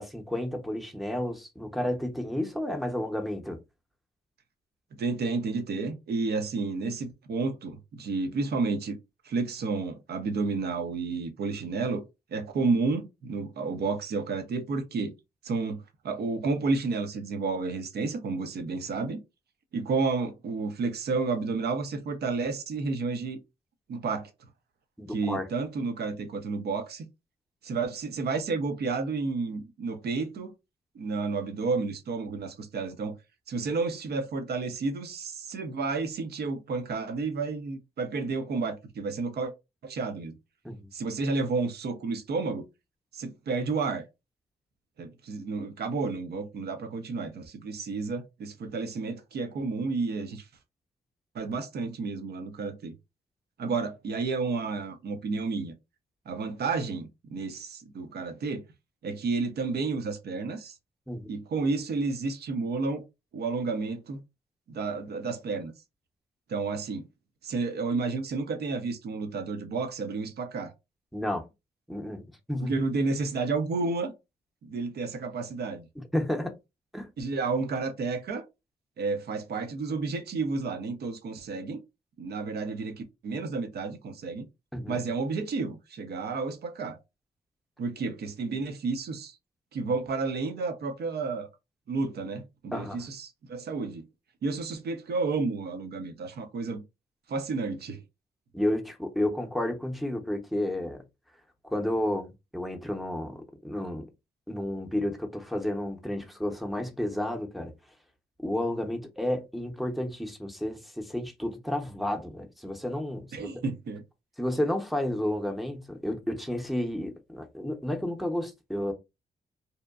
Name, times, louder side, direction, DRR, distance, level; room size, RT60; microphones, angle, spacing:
voice 1, 0.0-3.6 25.0-25.5 40.6-40.9 61.1-61.3 71.1-71.5 71.9-72.2 72.5-72.7 76.0-76.5 76.9-77.1 84.7-85.0 92.7-93.0 98.5-101.0 101.6-104.1 104.5-107.7 108.4-113.5 114.4-118.9, left 1 dB, ahead, 0.7 m, -31 dB
voice 2, 5.0-9.0 9.2-12.0 12.3-15.1 15.4-19.2 19.7-23.4 23.9-24.3 25.1-27.1 27.6-30.5 30.9-33.2 33.5-39.5 39.8-40.3 40.9-42.6 43.1-44.0 45.0-50.5 51.3-52.9 53.6-55.7 56.3-58.6 59.0-60.8 61.3-63.0 63.3-64.2 64.7-65.7 66.5-67.0 67.4-70.7 72.6-74.1 74.6-75.9 77.2-78.4 79.0-81.8 82.2-84.5 84.9-87.0 87.8-89.4 89.7-91.5 91.9-94.1 94.4-96.8 97.3-98.0 113.3-114.0, right 4 dB, 65° right, 0.6 m, -31 dB
2.8 x 2.1 x 2.3 m
supercardioid pair, 55°, 18 cm